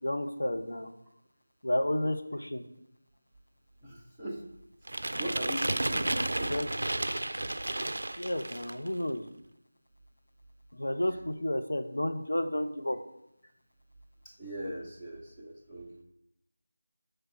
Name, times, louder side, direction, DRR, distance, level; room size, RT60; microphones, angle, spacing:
voice 1, 0.0-0.9 1.6-2.7 6.2-6.7 8.2-9.3 10.7-13.0, left 1 dB, 85° left, 6 dB, 0.7 m, -31 dB
voice 2, 3.8-4.5 4.9-6.5 14.2-16.0, equal, ahead, -10 dB, 0.8 m, -40 dB
sound 1, 4.9-8.9, right 1 dB, 70° right, 0.3 m, -32 dB
5.9 x 3.3 x 4.8 m, 0.85 s
figure-of-eight pair, 170°, 0 cm